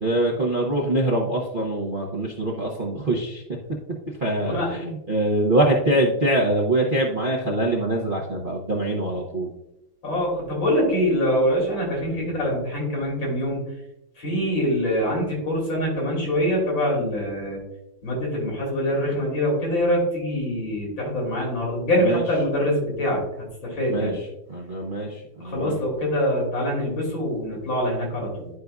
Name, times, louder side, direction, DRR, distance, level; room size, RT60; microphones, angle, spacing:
voice 1, 0.0-3.6 4.2-9.5 12.1-12.3 22.0-22.2 23.9-25.7, right 1 dB, 40° right, -3 dB, 0.7 m, -24 dB
voice 2, 10.0-13.6 14.2-17.6 18.0-24.2 25.4-28.5, equal, 85° left, -2 dB, 3.4 m, -24 dB
11.0 x 5.1 x 2.3 m, 0.87 s
omnidirectional pair, 2.1 m